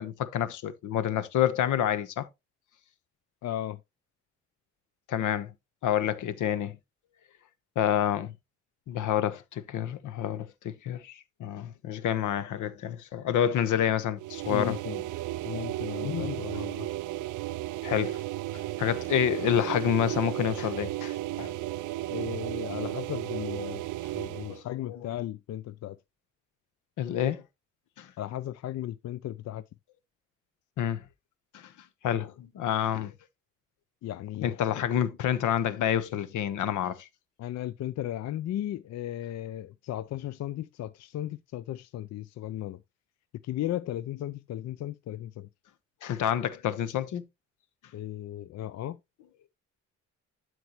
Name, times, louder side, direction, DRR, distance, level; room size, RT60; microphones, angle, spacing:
voice 1, 0.0-2.3 5.1-5.5 5.8-6.8 7.7-8.3 8.9-14.8 16.0-16.4 17.8-18.2 18.5-21.5 24.5-25.2 27.0-27.4 28.0-28.1 30.8-31.0 31.5-31.7 32.0-33.1 34.4-37.1 46.0-47.2, left 10 dB, 80° left, 1.1 m, -28 dB
voice 2, 3.4-3.8 14.5-15.0 15.4-16.9 22.1-23.8 24.1-26.0 28.2-29.6 32.9-33.1 34.0-34.5 37.4-42.8 43.4-45.5 47.9-49.0, left 12 dB, 60° left, 0.5 m, -36 dB
sound 1, 14.2-24.6, right 15 dB, 80° right, 0.5 m, -34 dB
12.0 x 4.7 x 3.0 m
cardioid pair, 90°, 30 cm